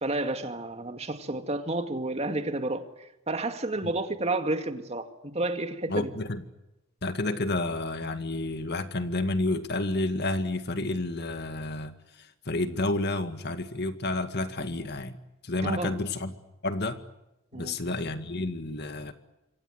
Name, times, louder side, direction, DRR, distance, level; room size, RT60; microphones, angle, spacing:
voice 1, 0.0-6.1 14.6-14.7 15.6-16.0 17.5-17.8, right 2 dB, 30° right, 2.2 m, -31 dB
voice 2, 5.9-6.4 7.0-15.1 15.4-16.3 16.6-17.0 17.5-19.1, left 2 dB, 55° left, 2.0 m, -30 dB
27.5 x 24.5 x 7.9 m
head